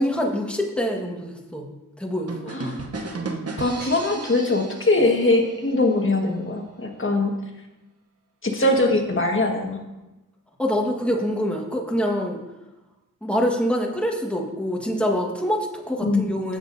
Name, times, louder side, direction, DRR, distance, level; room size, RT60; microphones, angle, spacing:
voice 1, 0.0-1.7 2.0-2.5 10.6-12.4 13.2-16.6, equal, 5° left, 0 dB, 1.4 m, -25 dB
sound 1, 2.3-6.0, right 3 dB, 50° right, 0.9 m, -34 dB
voice 2, 2.5-2.8 3.6-7.3 8.4-9.8 16.0-16.3, left 2 dB, 40° left, 1 dB, 1.6 m, -22 dB
16.0 x 7.2 x 2.7 m, 1.0 s
wide cardioid pair, 90°, 32 cm